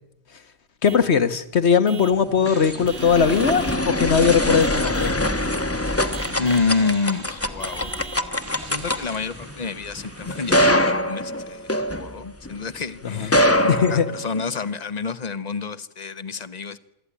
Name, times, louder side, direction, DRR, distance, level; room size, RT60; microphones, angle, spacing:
voice 1, 0.8-5.2 13.2-13.4 13.7-14.1, left 6 dB, 65° left, 12 dB, 1.7 m, -19 dB
Vehicle horn car horn honking / Truck, 0.9-1.1 1.9-2.3 2.9-3.9 4.6-5.3 6.1-6.7 7.6-8.3, right 5 dB, 45° right, 1.5 m, -40 dB
sound 1, 2.2-12.6 13.2-14.7, left 1 dB, 15° left, 1.0 m, -24 dB
sound 2, 2.4-10.9, right 4 dB, 65° right, 2.2 m, -43 dB
voice 2, 6.4-7.9 8.7-11.7 12.0-16.8, left 4 dB, 40° left, 15 dB, 1.0 m, -28 dB
26.5 x 13.0 x 9.9 m, 0.86 s
omnidirectional pair, 1.2 m